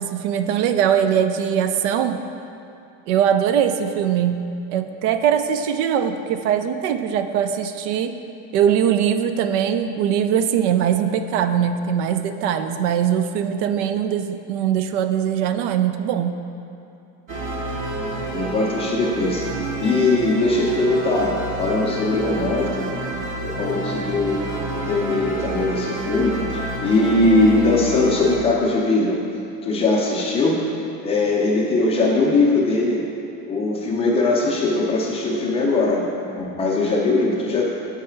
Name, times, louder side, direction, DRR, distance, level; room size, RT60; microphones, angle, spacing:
voice 1, 0.0-2.2 3.1-4.4 4.7-8.1 8.5-16.4, right 9 dB, 80° right, 9 dB, 0.5 m, -21 dB
sound 1, 17.3-28.4, right 2 dB, 35° right, 0.6 m, -29 dB
voice 2, 18.2-19.5 19.8-22.9 23.4-29.2 29.6-30.6 31.0-33.0 33.5-36.0 36.3-37.6, left 2 dB, 15° left, -3 dB, 0.5 m, -20 dB
6.4 x 4.8 x 4.4 m, 2.7 s
cardioid pair, 180°, 36 cm